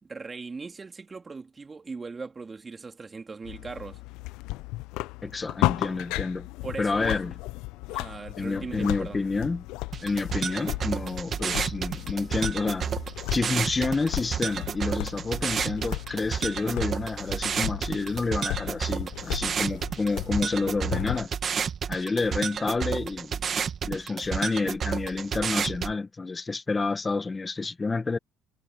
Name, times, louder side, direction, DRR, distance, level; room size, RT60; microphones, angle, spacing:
voice 1, 0.0-4.0 6.6-7.2 7.9-9.2, right 4 dB, 25° right, 3.1 m, -39 dB
sound 1, 3.4-21.3, left 20 dB, 75° left, 0.7 m, -35 dB
voice 2, 5.2-6.5 6.8-7.3 8.4-9.6 10.0-12.9 13.3-21.3 21.9-23.3 23.8-28.2, left 3 dB, 25° left, 1.4 m, -29 dB
sound 2, 9.9-25.9, right 7 dB, 45° right, 2.4 m, -31 dB
supercardioid pair, 80°, 0 cm